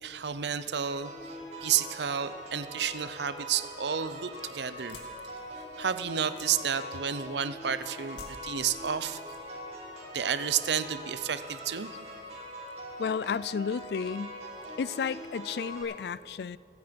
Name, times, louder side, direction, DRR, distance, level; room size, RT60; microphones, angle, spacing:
voice 1, 0.0-1.3 1.6-5.0 5.8-9.2 10.1-11.9, right 8 dB, 75° right, 13 dB, 0.7 m, -31 dB
sound 1, 0.8-15.8, equal, 40° right, 5.2 m, -43 dB
sound 2, 4.8-7.5 8.1-9.7 9.9-10.5, left 4 dB, 85° left, 2.2 m, -52 dB
voice 2, 13.0-14.4 14.8-16.6, left 6 dB, 65° left, 19 dB, 0.3 m, -32 dB
27.5 x 9.6 x 5.2 m, 2.4 s
head